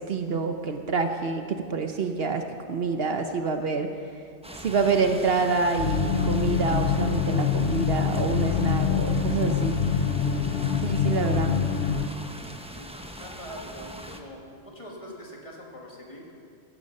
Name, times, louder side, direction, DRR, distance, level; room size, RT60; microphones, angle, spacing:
voice 1, 0.0-2.4 2.7-3.9 4.6-9.8 10.8-11.5, right 4 dB, 60° right, 6 dB, 1.0 m, -27 dB
sound 1, 4.4-14.2, equal, 5° right, 0.8 m, -41 dB
sound 2, 5.8-12.1, left 7 dB, 60° left, 1.0 m, -25 dB
voice 2, 11.2-11.5 12.7-12.9 13.2-16.3, equal, 30° left, -2 dB, 2.2 m, -43 dB
16.0 x 12.0 x 5.5 m, 2.3 s
omnidirectional pair, 1.2 m